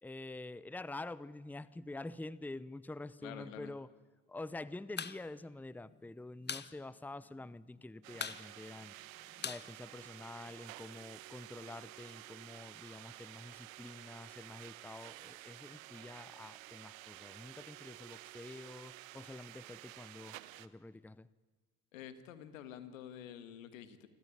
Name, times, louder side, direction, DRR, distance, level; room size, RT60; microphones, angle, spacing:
voice 1, 0.0-3.9 4.3-8.9 9.4-21.3, left 2 dB, 5° left, 19 dB, 0.8 m, -47 dB
voice 2, 3.2-3.8 21.9-24.1, left 9 dB, 90° left, 12 dB, 1.8 m, -49 dB
sound 1, 4.8-5.2 5.5-5.6 5.9-6.7 7.0-7.1 7.4-7.8 8.1-10.5, left 6 dB, 25° left, 1.1 m, -42 dB
sound 2, 8.0-20.7, right 17 dB, 85° right, 0.9 m, -52 dB
28.5 x 13.5 x 9.9 m, 1.3 s
hypercardioid pair, 70°, 39 cm